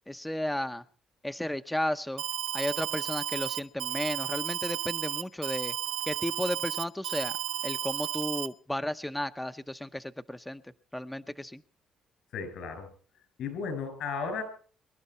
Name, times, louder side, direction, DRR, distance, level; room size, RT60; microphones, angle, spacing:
voice 1, 0.1-0.8 1.2-2.2 2.5-5.7 6.1-7.4 7.6-10.6 10.9-11.6, left 1 dB, 10° left, 10 dB, 0.8 m, -33 dB
Alarm, 2.2-8.5, right 12 dB, 90° right, 0.8 m, -33 dB
voice 2, 12.3-12.9 13.4-14.4, left 5 dB, 75° left, 9 dB, 6.2 m, -34 dB
23.5 x 12.0 x 4.3 m, 0.42 s
supercardioid pair, 60°, 0 cm